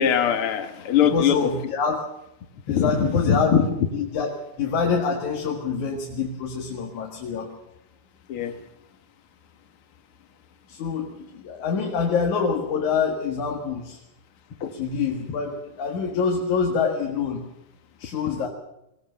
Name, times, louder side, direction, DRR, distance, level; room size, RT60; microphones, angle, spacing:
voice 1, 0.0-1.5 2.7-3.7 8.3-8.6 14.6-14.7, left 8 dB, 50° left, 8 dB, 2.2 m, -21 dB
voice 2, 1.0-2.0 2.7-3.6 3.9-4.3 4.6-7.5 10.7-14.0 14.7-17.5 18.0-18.5, left 5 dB, 70° left, 1 dB, 3.3 m, -26 dB
22.5 x 18.0 x 6.8 m, 0.86 s
omnidirectional pair, 3.6 m